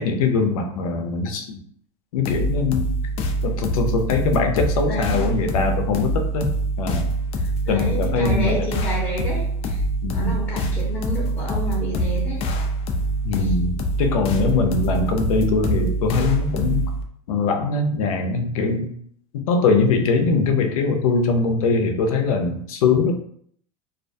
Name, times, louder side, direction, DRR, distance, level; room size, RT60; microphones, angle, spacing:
voice 1, 0.0-1.6 2.1-3.0 3.4-7.1 7.7-8.7 10.0-10.4 13.2-16.9 17.3-18.9 19.3-23.1, left 4 dB, 90° left, 5 dB, 0.5 m, -22 dB
sound 1, 2.3-17.0, right 1 dB, 35° left, 0.3 m, -24 dB
voice 2, 4.8-5.2 7.4-9.8 10.1-12.4 13.4-13.5, equal, 10° left, -7 dB, 0.8 m, -30 dB
2.4 x 2.2 x 2.5 m, 0.63 s
supercardioid pair, 125°, 18 cm